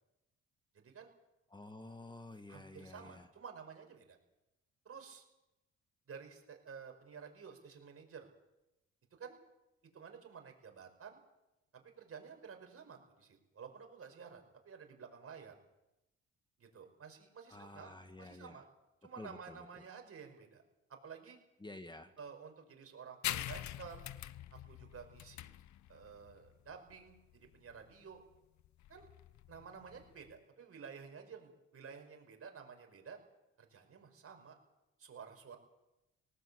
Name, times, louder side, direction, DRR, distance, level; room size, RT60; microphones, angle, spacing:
voice 1, 0.7-1.1 2.5-4.2 4.9-5.2 6.1-8.3 9.2-9.4 9.9-11.2 11.7-15.5 16.6-17.9 18.2-18.6 19.0-20.6 20.9-21.4 22.2-24.1 24.7-25.5 25.9-28.2 28.9-29.1 29.5-33.2 33.6-34.6 35.0-35.6, right 6 dB, 50° right, 4 dB, 5.4 m, -52 dB
voice 2, 1.5-3.3 17.5-18.6 19.2-19.8 21.6-22.1, left 2 dB, 15° left, 8 dB, 1.4 m, -51 dB
sound 1, 23.2-30.4, left 12 dB, 70° left, 0.8 m, -45 dB
19.0 x 18.0 x 8.4 m, 0.93 s
cardioid pair, 90°, 30 cm